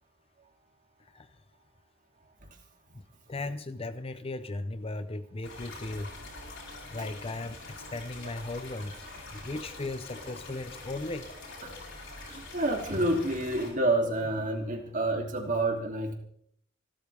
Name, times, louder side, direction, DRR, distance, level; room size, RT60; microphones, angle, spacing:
voice 1, 2.9-6.1 6.9-9.0 9.3-11.3, left 2 dB, 30° left, 12 dB, 0.7 m, -37 dB
sound 1, 5.4-13.7, left 2 dB, 65° left, 7.5 m, -45 dB
voice 2, 12.3-16.1, right 2 dB, 40° right, 3 dB, 2.9 m, -28 dB
28.5 x 13.0 x 3.5 m, 0.68 s
head